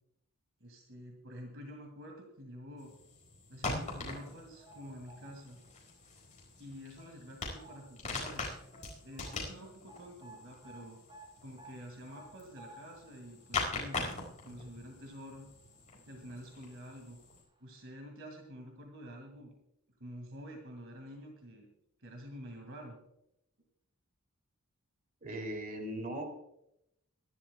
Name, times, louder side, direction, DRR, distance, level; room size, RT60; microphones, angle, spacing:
voice 1, 0.6-2.9 3.5-5.6 6.6-8.4 9.0-11.0 11.4-15.5 16.1-17.2 17.6-19.5 20.0-21.7 22.0-23.0, equal, 60° right, 2 dB, 2.3 m, -48 dB
sound 1, 2.8-17.4, left 3 dB, 35° left, 4.6 m, -43 dB
sound 2, 4.1-5.8 6.2-6.4 7.0-8.1 8.3-8.4 8.7-15.8 16.1-16.2 17.1-17.2 17.5-17.6, right 2 dB, 20° right, 3.1 m, -57 dB
voice 2, 25.2-26.2, right 1 dB, 40° right, 3 dB, 3.0 m, -38 dB
23.5 x 12.0 x 2.3 m, 0.79 s
head